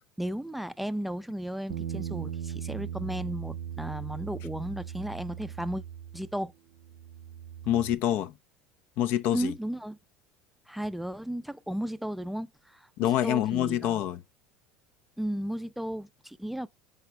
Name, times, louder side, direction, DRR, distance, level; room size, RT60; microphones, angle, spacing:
voice 1, 0.2-5.8 6.1-6.5 9.3-10.0 10.7-14.0 15.2-16.7, right 1 dB, 5° right, 0.5 m, -34 dB
Bass guitar, 1.7-6.5 6.8-7.9, right 9 dB, 75° right, 0.8 m, -38 dB
voice 2, 7.7-8.3 9.0-9.5 13.0-14.2, left 12 dB, 60° left, 0.7 m, -26 dB
6.6 x 4.8 x 3.4 m
hypercardioid pair, 75°, 4 cm